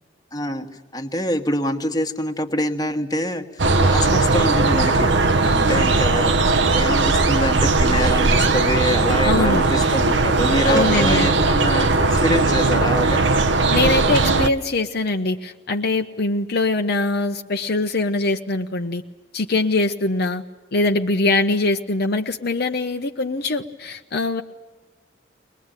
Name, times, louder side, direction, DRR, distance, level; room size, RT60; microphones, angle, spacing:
voice 1, 0.3-0.7 0.9-5.1 5.4-6.3 6.7-13.3, equal, 20° left, 5 dB, 1.4 m, -25 dB
sound 1, 3.6-14.5, right 3 dB, 70° right, 0.9 m, -18 dB
voice 2, 9.2-9.6 10.7-11.4 13.7-19.0 19.3-20.4 20.7-24.4, left 2 dB, 60° left, 5 dB, 0.9 m, -22 dB
22.5 x 21.0 x 9.0 m, 1.2 s
head